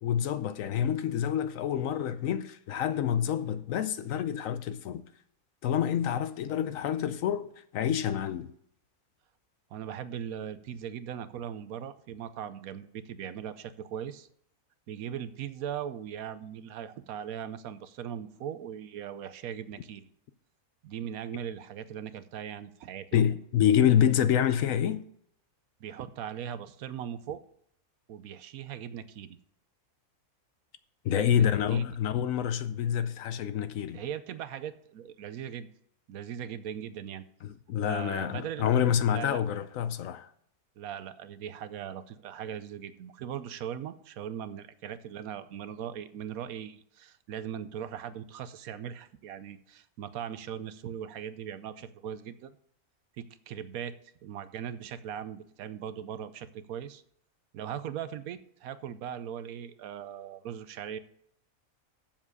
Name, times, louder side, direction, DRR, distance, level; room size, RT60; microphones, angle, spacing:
voice 1, 0.0-5.0 5.6-8.5 23.1-25.0 31.0-34.0 37.4-40.3, left 9 dB, 70° left, 0.9 m, -27 dB
voice 2, 9.7-14.3 14.9-20.1 20.8-23.4 25.8-27.4 28.1-29.4 31.1-31.9 33.9-35.7 36.1-37.2 37.8-38.7 39.1-39.4 40.8-52.6 53.2-54.0 54.2-57.0 57.5-61.0, right 9 dB, 75° right, 1.0 m, -39 dB
7.3 x 7.3 x 6.4 m
omnidirectional pair, 1.6 m